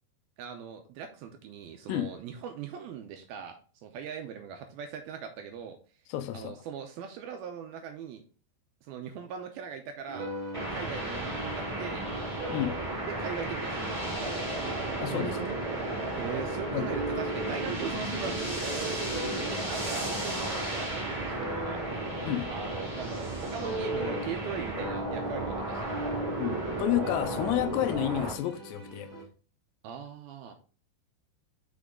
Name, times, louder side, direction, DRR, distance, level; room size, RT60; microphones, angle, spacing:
voice 1, 0.4-5.8 6.3-8.2 8.8-10.3 10.7-12.1 13.1-15.6 16.1-19.0 19.4-22.1 22.5-26.0 29.8-30.5, right 7 dB, 80° right, 2.3 m, -40 dB
voice 2, 6.1-6.5 12.5-12.8 15.0-15.4 16.7-16.9 22.3-22.5 26.4-29.1, left 13 dB, 85° left, 2.8 m, -30 dB
sound 1, 10.1-24.5 24.8-29.2, right 1 dB, 35° right, 2.5 m, -40 dB
sound 2, 10.5-28.3, right 1 dB, 10° right, 2.3 m, -34 dB
6.4 x 6.2 x 3.6 m
omnidirectional pair, 4.9 m